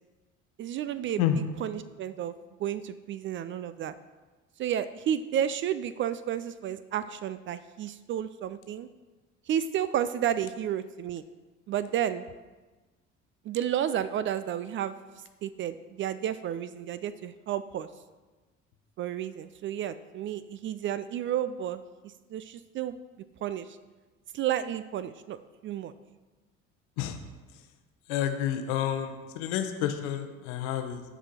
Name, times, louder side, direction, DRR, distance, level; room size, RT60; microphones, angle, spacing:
voice 1, 0.6-1.2 1.6-2.3 2.6-3.9 4.6-8.9 9.5-11.2 11.7-12.2 13.5-15.0 15.4-17.9 19.0-21.8 22.3-23.0 23.4-23.8 24.3-25.4 25.6-25.9, right 10 dB, 35° right, 13 dB, 0.4 m, -31 dB
voice 2, 28.1-31.0, left 10 dB, 60° left, 7 dB, 1.0 m, -29 dB
15.0 x 5.0 x 4.3 m, 1.3 s
figure-of-eight pair, 55°, 38 cm